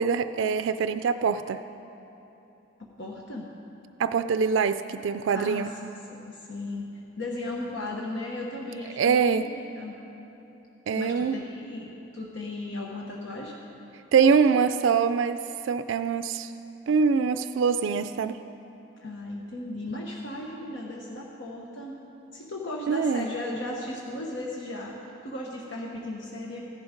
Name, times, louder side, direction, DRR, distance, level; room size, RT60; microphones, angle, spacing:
voice 1, 0.0-1.6 4.0-5.7 9.0-9.5 10.9-11.4 14.1-16.5 16.9-18.4 22.9-23.3, right 6 dB, 85° right, 10 dB, 0.3 m, -24 dB
voice 2, 2.8-3.5 5.3-5.7 6.1-6.9 7.2-10.0 10.9-13.5 19.0-22.0 22.3-26.6, left 2 dB, 80° left, -2 dB, 1.2 m, -36 dB
15.5 x 11.0 x 5.1 m, 3.0 s
head